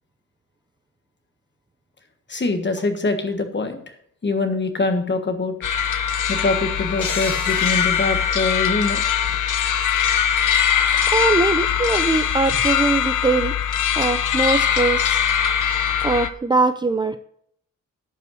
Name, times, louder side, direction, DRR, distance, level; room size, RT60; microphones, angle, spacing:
voice 1, 2.3-3.8 4.2-5.6 6.3-9.0, left 3 dB, 35° left, 7 dB, 1.5 m, -23 dB
sound 1, 5.6-16.3, left 8 dB, 65° left, 0.8 m, -21 dB
sound 2, 7.0-9.7, equal, 15° left, 4.7 m, -38 dB
voice 2, 11.1-13.5 14.0-15.2 16.0-17.2, right 3 dB, 15° right, 9 dB, 0.4 m, -21 dB
10.5 x 5.6 x 6.4 m, 0.68 s
cardioid pair, 105°, 33 cm